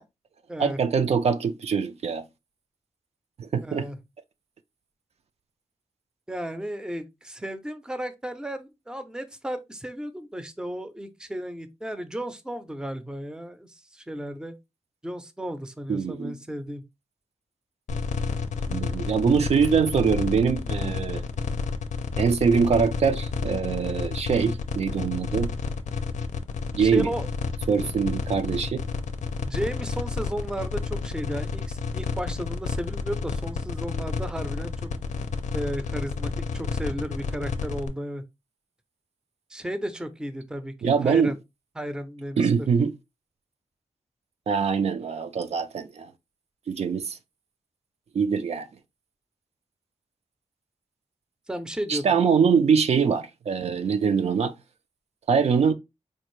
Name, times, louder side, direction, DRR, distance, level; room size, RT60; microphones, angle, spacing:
voice 1, 0.6-2.2 3.4-3.9 15.9-16.3 18.7-21.2 22.2-25.5 26.7-27.1 27.7-28.8 40.8-41.3 42.4-42.9 44.5-46.1 46.7-47.2 48.1-48.7 51.9-54.5 55.3-55.7, right 6 dB, 60° right, 0.4 m, -23 dB
voice 2, 3.6-4.0 6.3-14.5 15.0-16.8 26.8-27.3 29.4-34.9 35.5-38.2 39.5-41.4 41.8-42.7 51.5-52.1, equal, 5° right, 0.5 m, -34 dB
sound 1, 17.9-37.9, left 5 dB, 90° left, 0.5 m, -30 dB
4.3 x 2.4 x 3.1 m
wide cardioid pair, 120°, 12 cm